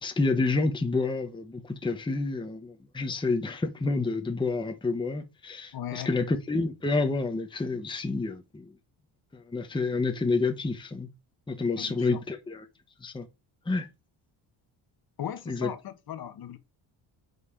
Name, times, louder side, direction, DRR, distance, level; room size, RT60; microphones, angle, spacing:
voice 1, 0.0-8.7 9.3-11.1 11.5-12.6 13.0-13.3 13.7-13.9 15.5-15.7, left 3 dB, 10° left, 0.8 m, -29 dB
voice 2, 5.7-6.1 11.8-12.2 15.2-16.6, left 10 dB, 50° left, 1.0 m, -37 dB
5.3 x 4.2 x 4.9 m
cardioid pair, 110°, 47 cm